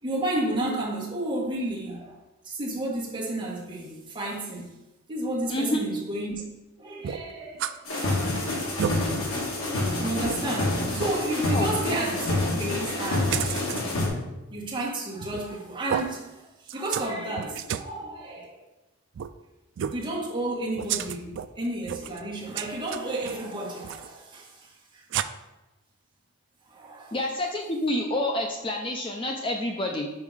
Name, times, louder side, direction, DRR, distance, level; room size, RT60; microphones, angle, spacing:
voice 1, 0.0-2.2 2.4-4.7 5.1-6.4 6.8-7.8 10.0-12.3 12.6-13.6 14.5-18.6 19.9-25.0 26.7-27.1 29.8-29.9, right 1 dB, 20° right, -5 dB, 1.6 m, -32 dB
voice 2, 5.5-5.8 11.4-11.7 27.1-30.1, left 1 dB, 25° left, 2 dB, 0.5 m, -28 dB
sound 1, 7.0-7.8 8.2-8.3 8.6-9.0 9.6-9.7 10.2-10.4 11.0-11.2 13.3-13.8 15.2-15.6 15.9-16.1 16.7-17.1 17.4-17.9 19.1-19.3 19.8-20.0 20.7-21.5 21.8-22.2 22.6-23.4 23.8-24.1 25.1-25.2, right 9 dB, 55° right, 0.3 m, -31 dB
sound 2, 7.9-14.1, left 2 dB, 70° left, 1.6 m, -27 dB
5.4 x 4.8 x 4.9 m, 1.0 s
head